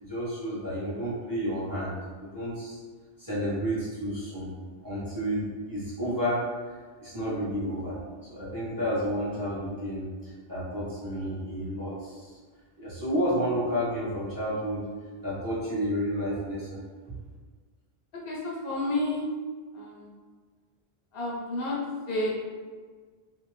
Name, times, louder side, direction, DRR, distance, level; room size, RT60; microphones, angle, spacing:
voice 1, 0.0-2.8 3.2-4.5 4.8-8.0 8.3-12.3 12.8-14.9 15.2-16.8, equal, 20° right, -10 dB, 0.7 m, -31 dB
voice 2, 18.2-19.2 19.7-20.1 21.1-21.8 22.1-22.5, left 2 dB, 65° left, -4 dB, 0.8 m, -30 dB
2.6 x 2.2 x 3.0 m, 1.5 s
omnidirectional pair, 1.1 m